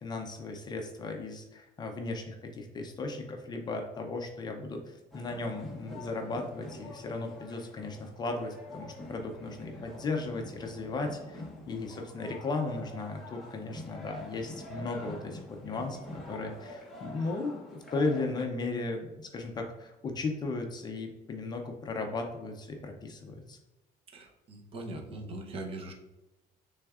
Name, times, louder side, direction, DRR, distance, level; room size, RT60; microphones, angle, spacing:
voice 1, 0.0-23.6, left 3 dB, 25° left, 3 dB, 0.5 m, -36 dB
sound 1, 5.1-18.5, left 1 dB, ahead, 0.8 m, -46 dB
voice 2, 24.1-25.9, right 2 dB, 35° right, 2 dB, 0.7 m, -41 dB
6.2 x 3.5 x 2.4 m, 1.0 s
cardioid pair, 180°, 16 cm